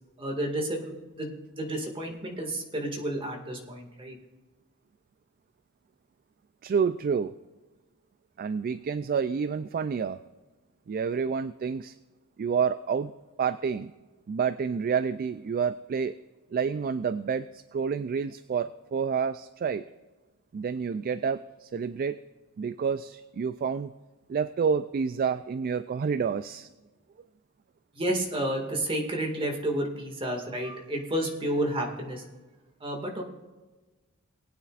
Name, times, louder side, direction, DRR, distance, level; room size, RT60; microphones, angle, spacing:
voice 1, 0.2-4.1 27.9-32.2 32.8-33.2, right 1 dB, 25° right, 1 dB, 2.0 m, -31 dB
voice 2, 6.6-7.3 8.4-10.2 10.9-12.0 12.4-13.1 13.4-13.9 14.3-16.1 16.5-19.8 20.5-22.2 22.6-23.9 24.3-26.7, right 6 dB, 40° right, 14 dB, 0.3 m, -29 dB
20.0 x 9.5 x 2.5 m, 1.2 s
head